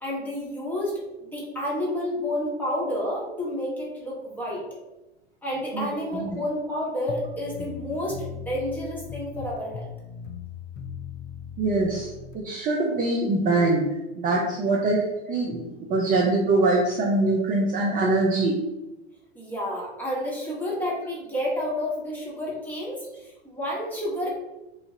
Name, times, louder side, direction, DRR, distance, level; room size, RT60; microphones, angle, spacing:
voice 1, 0.0-4.6 5.4-9.9 19.3-24.4, left 1 dB, 5° left, -6 dB, 1.3 m, -30 dB
voice 2, 5.7-6.4 11.6-12.1 12.3-15.6 15.9-18.6, right 2 dB, 25° right, -1 dB, 0.5 m, -23 dB
sound 1, 7.1-12.4, left 7 dB, 35° left, 0.5 m, -39 dB
3.0 x 2.5 x 3.7 m, 1.0 s
hypercardioid pair, 90°, 34 cm